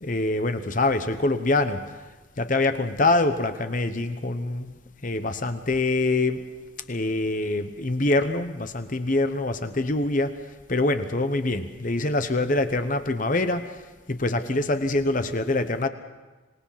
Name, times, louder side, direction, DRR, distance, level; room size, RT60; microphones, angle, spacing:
voice 1, 0.0-2.0 2.4-4.7 5.0-6.4 6.9-10.4 10.7-13.8 14.1-15.9, left 2 dB, 40° left, 9 dB, 1.0 m, -25 dB
26.5 x 19.5 x 5.8 m, 1.2 s
head